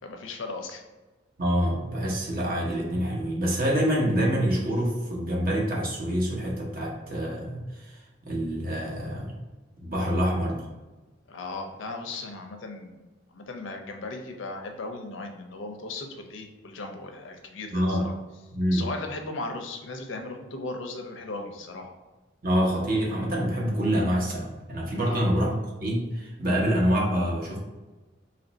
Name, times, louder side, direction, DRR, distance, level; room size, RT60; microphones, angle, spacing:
voice 1, 0.0-0.8 11.3-13.0 13.3-18.2 18.7-21.9 25.0-25.3, left 3 dB, 80° left, 4 dB, 0.6 m, -37 dB
voice 2, 1.4-9.3 9.8-10.7 17.7-18.1 18.5-18.9 22.4-27.6, equal, 50° right, -3 dB, 0.9 m, -26 dB
3.0 x 2.5 x 3.9 m, 1.2 s
head